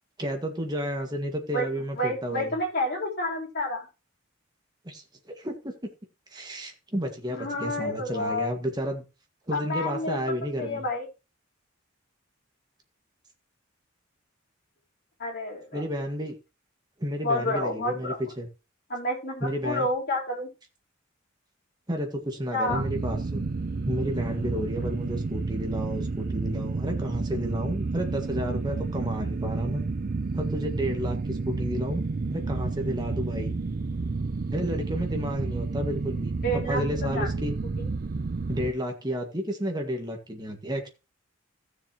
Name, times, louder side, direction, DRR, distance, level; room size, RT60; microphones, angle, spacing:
voice 1, 0.2-2.5 4.8-5.7 6.3-9.0 9.5-10.8 15.7-16.3 17.0-18.5 19.4-19.9 21.9-23.5 23.8-29.9 30.3-33.5 34.5-37.5 38.5-40.9, equal, 20° right, 1.7 m, -31 dB
voice 2, 1.5-3.9 7.4-8.5 9.5-10.2 10.6-11.1 15.2-15.8 17.2-18.2 18.9-20.5 22.5-22.8 36.4-37.3 37.8-37.9, left 1 dB, 50° left, 3.7 m, -29 dB
sound 1, 22.7-38.7, right 3 dB, 45° right, 0.5 m, -30 dB
15.5 x 6.9 x 3.0 m
head